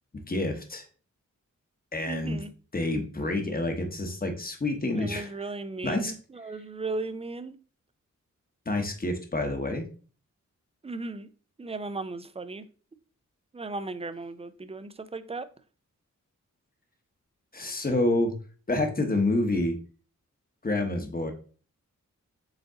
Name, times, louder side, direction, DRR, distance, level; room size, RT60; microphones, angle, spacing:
voice 1, 0.3-0.8 1.9-2.4 2.7-5.3 5.8-6.1 8.7-9.9 17.5-18.3 18.7-19.7 20.6-21.3, left 2 dB, 30° left, 0.9 m, -28 dB
voice 2, 2.1-2.5 4.9-7.6 10.8-11.3 11.6-12.6 13.5-15.5, right 3 dB, 20° right, 0.4 m, -36 dB
4.9 x 2.6 x 3.7 m
cardioid pair, 70°, 31 cm